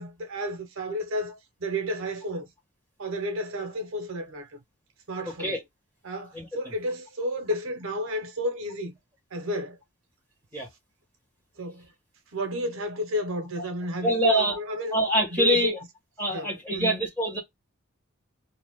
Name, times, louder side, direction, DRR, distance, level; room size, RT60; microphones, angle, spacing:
voice 1, 0.0-2.5 3.0-4.5 5.1-5.5 6.0-8.9 9.3-9.8 11.6-11.9 12.3-15.0 15.3-15.7 16.3-17.0, left 1 dB, 65° right, 0.8 m, -31 dB
voice 2, 6.3-6.7 10.5-10.7 14.0-14.6 14.9-15.8 16.2-17.4, right 1 dB, 10° left, 1.3 m, -25 dB
2.6 x 2.3 x 3.5 m
head